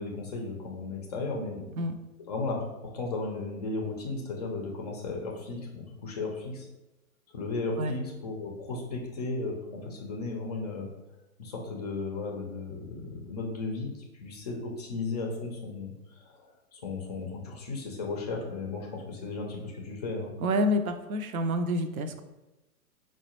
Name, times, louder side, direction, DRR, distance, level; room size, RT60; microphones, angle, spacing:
voice 1, 0.0-1.7 2.3-6.7 7.3-10.9 11.4-20.3, left 3 dB, 30° left, -1 dB, 0.4 m, -35 dB
voice 2, 20.4-22.2, equal, 70° right, 8 dB, 0.5 m, -28 dB
4.8 x 2.1 x 2.9 m, 1.0 s
figure-of-eight pair, 110°, 45 cm